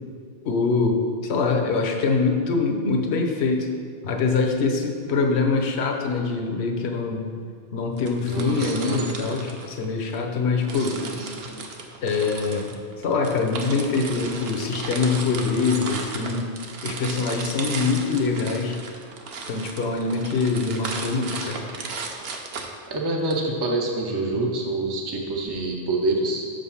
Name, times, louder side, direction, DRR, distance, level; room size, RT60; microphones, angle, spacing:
voice 1, 0.4-3.7 4.0-7.3 7.7-11.0 12.0-12.7 13.0-16.5 16.8-18.8 19.5-21.7, left 4 dB, 65° left, 3 dB, 1.1 m, -24 dB
sound 1, 8.0-10.2 10.6-23.3, right 4 dB, 60° right, 0.9 m, -35 dB
voice 2, 8.3-9.2 10.7-11.6 22.9-26.5, right 2 dB, 25° right, -1 dB, 0.6 m, -27 dB
6.6 x 5.1 x 5.5 m, 2.3 s
omnidirectional pair, 1.2 m